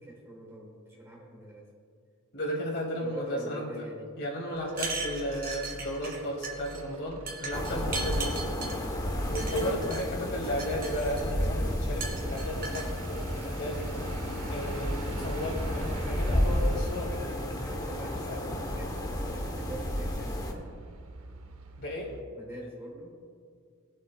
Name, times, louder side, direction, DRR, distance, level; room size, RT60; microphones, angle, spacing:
voice 1, 0.0-1.7 3.0-4.2 9.6-10.1 17.5-20.7 22.3-23.2, right 2 dB, 10° right, -2 dB, 1.3 m, -44 dB
voice 2, 2.3-3.7 4.2-8.5 9.3-13.9 14.5-18.4 21.8-22.1, equal, 50° left, -2 dB, 2.4 m, -34 dB
Truck / Idling, 4.5-22.2, right 2 dB, 70° right, 0.7 m, -47 dB
sound 1, 4.7-6.2 6.4-6.8 7.3-8.8 9.3-10.0 10.4-11.5 12.0-12.9, right 4 dB, 45° right, 2.0 m, -37 dB
sound 2, 7.5-20.5, equal, 15° left, 0.9 m, -32 dB
21.0 x 7.8 x 2.3 m, 2.2 s
head